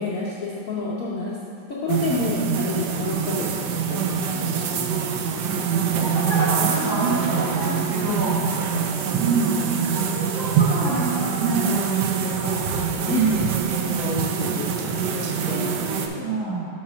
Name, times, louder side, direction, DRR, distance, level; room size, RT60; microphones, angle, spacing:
voice 1, 0.0-1.4 1.7-5.1 8.0-8.4 8.8-8.9 12.3-12.4 13.0-16.4, left 3 dB, 60° left, -7 dB, 0.9 m, -30 dB
sound 1, 1.9-16.1, right 7 dB, 75° right, 1.0 m, -24 dB
voice 2, 5.5-8.4 9.1-12.7 13.1-13.6 14.4-14.9 16.2-16.7, right 3 dB, 60° right, -8 dB, 2.3 m, -27 dB
5.9 x 4.2 x 6.1 m, 2.4 s
omnidirectional pair, 2.2 m